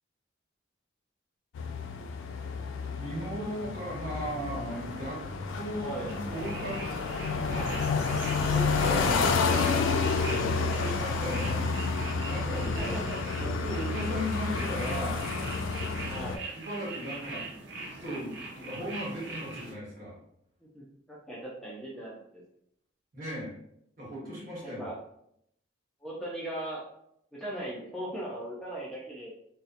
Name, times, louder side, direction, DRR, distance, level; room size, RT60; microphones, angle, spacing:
sound 1, 1.5-16.4, left 4 dB, 85° left, 0.3 m, -30 dB
voice 1, 3.0-5.2 5.5-7.9 8.5-11.7 12.1-12.9 13.4-15.3 16.5-20.2 23.1-23.5 24.0-24.8, equal, 45° right, -6 dB, 1.2 m, -37 dB
voice 2, 5.8-6.1 8.9-9.2 12.7-13.4 16.1-16.5 20.7-22.4 24.6-25.0 26.0-26.8 27.3-29.3, right 1 dB, ahead, -6 dB, 0.4 m, -39 dB
sound 2, 6.1-19.7, right 3 dB, 65° right, 0.6 m, -43 dB
2.7 x 2.1 x 2.4 m, 0.73 s
head